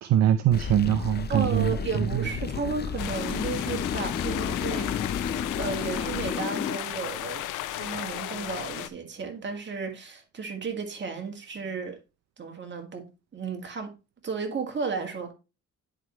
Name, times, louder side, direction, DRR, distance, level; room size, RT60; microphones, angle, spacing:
voice 1, 0.0-2.2, right 10 dB, 60° right, 0.5 m, -23 dB
sound 1, 0.5-6.8, left 7 dB, 35° left, 0.5 m, -32 dB
voice 2, 1.3-4.9 5.6-12.0 12.4-13.9 14.2-15.3, right 5 dB, 40° right, 1.8 m, -33 dB
sound 2, 3.0-8.9, left 14 dB, 90° left, 0.6 m, -35 dB
9.9 x 4.5 x 3.0 m
cardioid pair, 90°, 30 cm